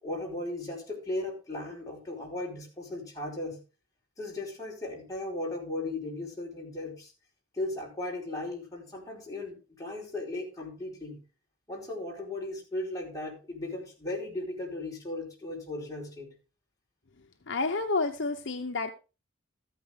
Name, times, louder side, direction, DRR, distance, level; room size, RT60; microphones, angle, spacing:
voice 1, 0.0-3.6 4.2-7.1 7.5-11.2 11.7-16.3, left 2 dB, 15° left, -3 dB, 4.5 m, -36 dB
voice 2, 17.5-18.9, left 3 dB, 55° left, 5 dB, 0.9 m, -29 dB
14.0 x 9.2 x 3.6 m, 0.31 s
head